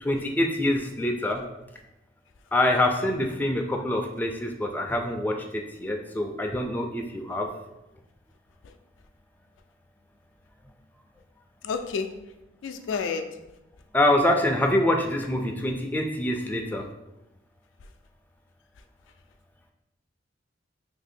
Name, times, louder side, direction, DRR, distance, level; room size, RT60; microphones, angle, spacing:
voice 1, 0.0-1.4 2.5-7.5 13.9-16.8, left 1 dB, 10° left, 2 dB, 0.3 m, -25 dB
voice 2, 11.6-12.1 12.6-13.2, left 5 dB, 85° left, 7 dB, 0.3 m, -29 dB
2.8 x 2.6 x 4.2 m, 0.91 s
head